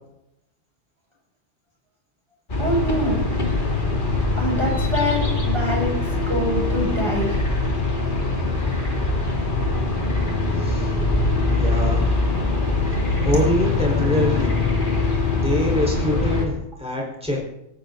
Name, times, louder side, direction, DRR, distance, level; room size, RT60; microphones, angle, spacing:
sound 1, 2.5-16.5, left 3 dB, 40° left, 2.8 m, -22 dB
voice 1, 2.6-3.3 4.4-7.4, equal, 20° right, -2 dB, 6.3 m, -25 dB
voice 2, 10.6-10.9 11.5-12.1 13.2-14.5 15.4-17.4, left 1 dB, 5° right, -2 dB, 4.7 m, -24 dB
17.5 x 16.5 x 4.0 m, 0.81 s
omnidirectional pair, 1.3 m